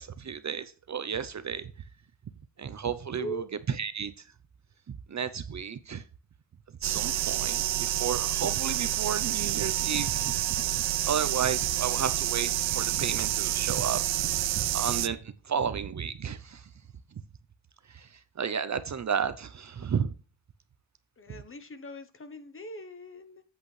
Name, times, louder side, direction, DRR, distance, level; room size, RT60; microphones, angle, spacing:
voice 1, 0.0-1.7 2.6-3.4 3.8-4.1 5.1-6.0 6.8-16.7 17.9-20.1, right 7 dB, 40° right, 0.6 m, -33 dB
sound 1, 6.8-15.1, right 14 dB, 85° right, 0.6 m, -28 dB
voice 2, 21.2-23.4, equal, 30° left, 0.9 m, -40 dB
8.4 x 8.0 x 3.2 m
wide cardioid pair, 155°, 43 cm